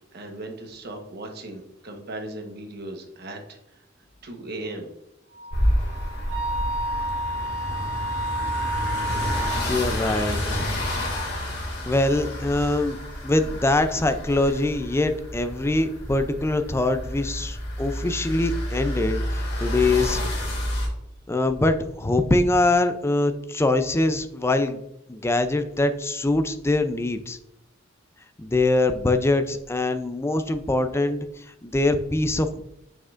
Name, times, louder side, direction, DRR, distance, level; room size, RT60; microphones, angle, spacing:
voice 1, 0.1-3.8 4.2-4.9, right 2 dB, 55° right, 4 dB, 1.1 m, -37 dB
Wind instrument woodwind instrument, 5.3-9.7, right 1 dB, 80° right, 2.3 m, -30 dB
sound 1, 5.5-20.9, left 1 dB, 60° left, 2.1 m, -29 dB
voice 2, 9.5-10.6 11.9-20.2 21.3-24.8 25.1-27.4 28.4-32.6, left 2 dB, 15° left, 9 dB, 0.4 m, -23 dB
7.2 x 6.2 x 2.5 m, 0.83 s
head